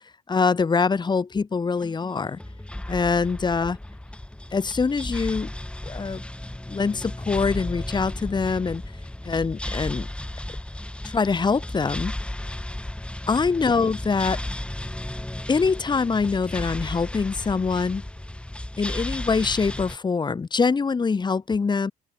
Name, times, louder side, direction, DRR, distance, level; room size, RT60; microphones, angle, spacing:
voice 1, 0.3-2.4 2.9-3.8 4.5-5.5 5.8-6.2 6.7-8.8 9.2-10.1 11.0-12.1 13.3-14.4 15.5-18.0 18.8-21.9, left 5 dB, 25° left, 3.2 m, -24 dB
sound 1, 1.8-20.0, left 1 dB, 5° left, 5.9 m, -34 dB
open air
cardioid pair, 110°, 17 cm